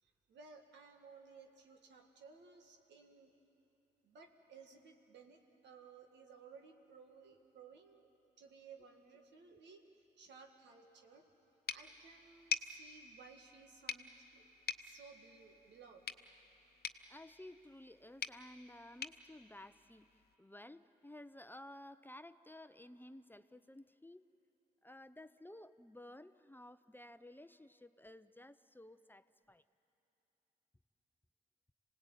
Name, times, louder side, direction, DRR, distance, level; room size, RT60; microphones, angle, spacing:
voice 1, 0.0-3.3 4.0-8.1 8.4-9.8 10.2-11.3 11.7-14.5 14.8-16.1, right 5 dB, 80° right, 4 dB, 2.0 m, -58 dB
sound 1, 11.7-20.4, left 7 dB, 60° left, 1.0 m, -47 dB
voice 2, 17.1-20.1 20.4-24.2 24.8-29.6, left 1 dB, 10° left, 12 dB, 0.7 m, -55 dB
26.5 x 18.0 x 9.1 m, 3.0 s
supercardioid pair, 45°, 18 cm